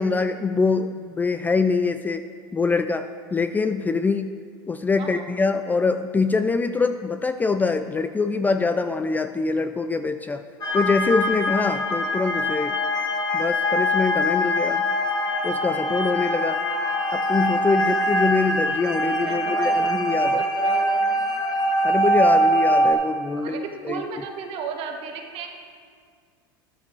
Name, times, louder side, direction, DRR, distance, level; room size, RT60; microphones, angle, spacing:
voice 1, 0.0-2.3 2.5-4.3 4.7-10.4 10.7-12.7 13.3-14.9 15.4-16.6 17.1-20.4 21.8-24.0, left 4 dB, 15° left, 9 dB, 0.4 m, -24 dB
sound 1, 10.6-22.9, equal, 35° left, 1.7 m, -23 dB
voice 2, 19.2-21.3 23.4-25.6, right 6 dB, 50° right, 3 dB, 1.5 m, -34 dB
13.5 x 10.5 x 3.2 m, 2.1 s
hypercardioid pair, 100°, 12 cm